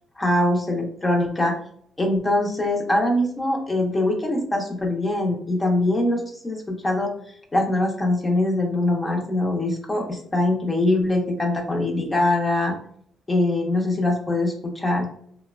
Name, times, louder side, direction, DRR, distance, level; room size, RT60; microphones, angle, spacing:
voice 1, 0.2-1.5 2.0-7.1 7.5-12.7 13.3-15.1, left 1 dB, 20° left, 1 dB, 0.7 m, -23 dB
2.8 x 2.1 x 2.3 m, 0.63 s
cardioid pair, 90°, 0 cm